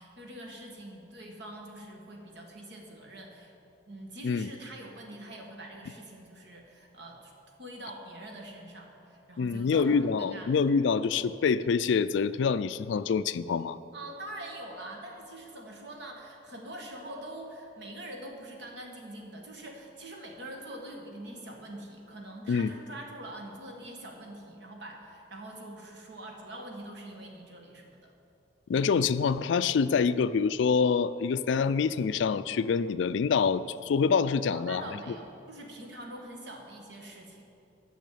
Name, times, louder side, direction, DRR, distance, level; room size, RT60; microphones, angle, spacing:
voice 1, 0.0-3.5 3.9-7.3 7.6-10.6 13.9-28.1 34.5-37.4, right 1 dB, 65° right, 1 dB, 1.6 m, -44 dB
voice 2, 9.4-13.8 22.5-22.7 28.7-34.8, left 5 dB, 70° left, 15 dB, 0.3 m, -26 dB
9.1 x 6.4 x 8.4 m, 2.7 s
head